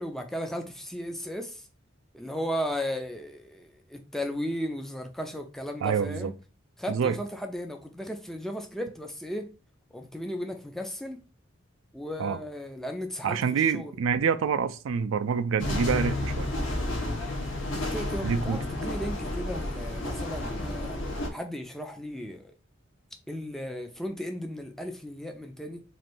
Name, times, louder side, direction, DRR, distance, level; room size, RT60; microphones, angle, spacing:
voice 1, 0.0-1.7 2.1-6.3 6.8-9.5 9.9-11.2 11.9-14.0 17.7-21.0 21.3-22.5 23.3-25.8, equal, ahead, 0.4 m, -35 dB
voice 2, 5.8-6.3 6.9-7.2 12.2-12.4 13.2-16.5 18.2-18.6, right 6 dB, 85° right, 0.4 m, -26 dB
sound 1, 15.6-21.3, left 1 dB, 70° left, 1.0 m, -31 dB
3.1 x 2.5 x 4.4 m
head